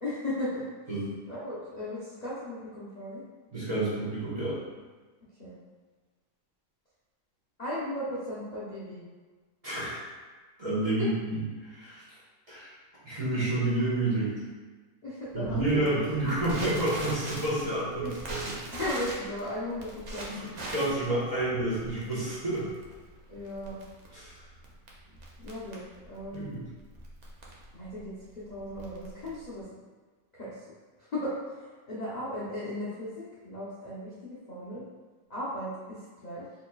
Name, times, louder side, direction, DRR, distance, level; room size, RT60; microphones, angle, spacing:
voice 1, 0.0-0.7 1.3-3.2 5.4-5.6 7.6-9.0 11.0-11.1 15.0-15.9 18.0-18.1 18.7-20.3 23.3-23.8 25.4-26.5 27.7-29.7 30.3-30.5 31.0-34.8 35.3-36.4, left 1 dB, 40° left, -10 dB, 0.7 m, -36 dB
voice 2, 3.5-4.6 9.6-10.0 10.6-12.0 12.5-12.7 13.0-14.4 15.3-18.5 20.3-22.6 24.1-24.3 26.3-26.6, right 2 dB, 30° right, -10 dB, 1.1 m, -29 dB
Crackle, 15.4-29.6, right 1 dB, 60° right, 0.4 m, -42 dB
4.3 x 3.2 x 2.3 m, 1.4 s
omnidirectional pair, 1.5 m